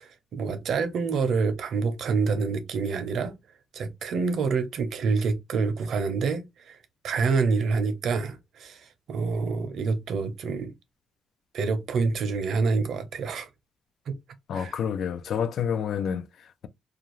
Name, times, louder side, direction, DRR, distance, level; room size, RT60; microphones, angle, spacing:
voice 1, 0.0-3.3 3.7-6.8 7.0-8.8 9.1-10.7 11.5-13.5 14.1-14.2 14.5-14.7, right 4 dB, 65° right, 0.6 m, -27 dB
voice 2, 14.5-16.7, left 7 dB, 65° left, 0.3 m, -29 dB
2.4 x 2.4 x 3.0 m
cardioid pair, 125°, 0 cm